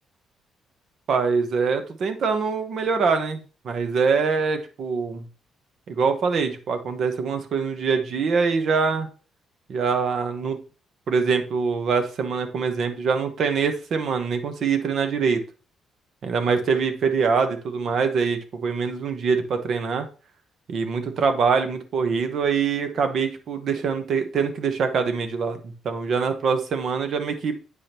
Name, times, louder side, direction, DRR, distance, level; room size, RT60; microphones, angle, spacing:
voice 1, 1.1-5.3 5.9-9.1 9.7-10.6 11.1-15.4 16.2-20.1 20.7-27.5, right 5 dB, 60° right, 7 dB, 1.1 m, -24 dB
8.2 x 5.0 x 2.9 m, 0.35 s
cardioid pair, 90°, 0 cm